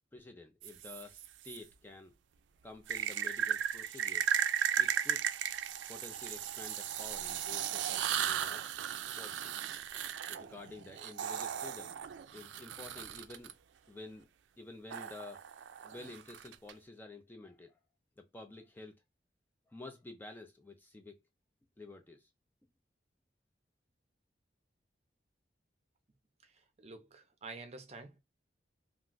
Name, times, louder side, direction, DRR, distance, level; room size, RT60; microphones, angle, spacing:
voice 1, 0.1-2.1 2.6-4.3 4.8-5.3 5.9-8.6 9.2-9.6 10.3-12.0 12.3-13.5 13.9-14.3 14.6-15.4 15.8-17.8 18.2-18.9 19.7-21.2 21.8-22.3, left 2 dB, 10° left, 0.3 m, -50 dB
sound 1, 0.6-1.6 2.9-13.5 14.9-16.7, right 9 dB, 90° right, 0.3 m, -36 dB
voice 2, 26.8-28.2, right 3 dB, 35° right, 0.5 m, -48 dB
2.4 x 2.3 x 3.7 m
head